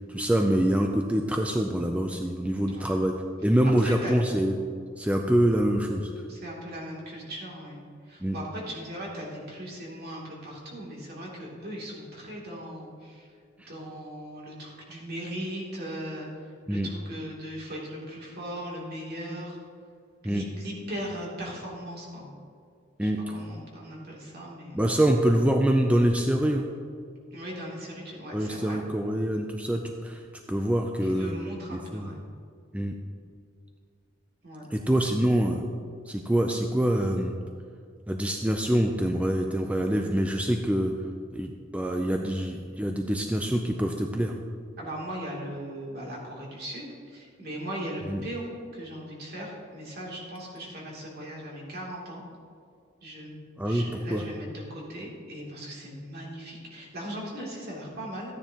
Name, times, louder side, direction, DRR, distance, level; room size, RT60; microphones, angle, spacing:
voice 1, 0.1-3.1 3.4-4.6 5.0-6.1 8.2-8.4 16.7-16.9 20.2-20.4 23.0-23.2 24.7-26.7 28.3-30.2 30.5-31.3 31.7-32.1 32.7-32.9 34.7-35.6 36.1-37.3 38.1-40.9 41.3-44.4 48.1-48.2 53.6-53.8 54.1-54.2, right 1 dB, 5° right, 3 dB, 0.4 m, -25 dB
voice 2, 3.8-4.1 6.3-7.8 8.1-13.3 13.7-16.3 16.7-19.6 20.2-22.3 23.0-24.8 27.3-28.8 31.0-32.2 34.4-34.7 44.8-52.2 53.0-53.3 53.6-58.3, equal, 55° right, -4 dB, 2.8 m, -38 dB
14.0 x 9.7 x 2.9 m, 2.2 s
head